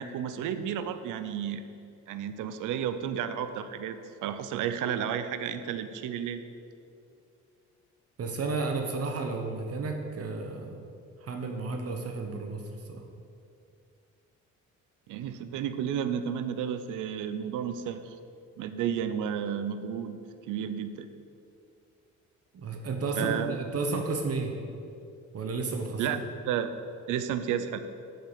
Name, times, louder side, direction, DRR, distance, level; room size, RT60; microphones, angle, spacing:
voice 1, 0.0-1.6 2.1-6.4 15.1-18.2 18.6-20.2 20.5-21.1 23.2-23.6 26.0-26.8 27.1-27.8, right 8 dB, 85° right, 11 dB, 0.7 m, -32 dB
voice 2, 8.2-10.8 11.2-13.1 22.5-24.6 25.3-26.0, right 3 dB, 50° right, 4 dB, 1.2 m, -32 dB
7.8 x 7.6 x 7.0 m, 2.5 s
cardioid pair, 90°, 30 cm